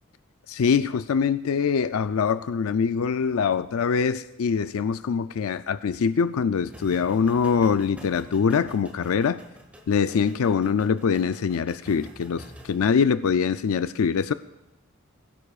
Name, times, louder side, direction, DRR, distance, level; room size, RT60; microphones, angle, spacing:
voice 1, 0.5-9.4 9.9-14.3, left 6 dB, 90° left, 0.4 m, -23 dB
sound 1, 6.6-12.8, equal, 5° right, 1.7 m, -47 dB
24.0 x 16.0 x 2.4 m
head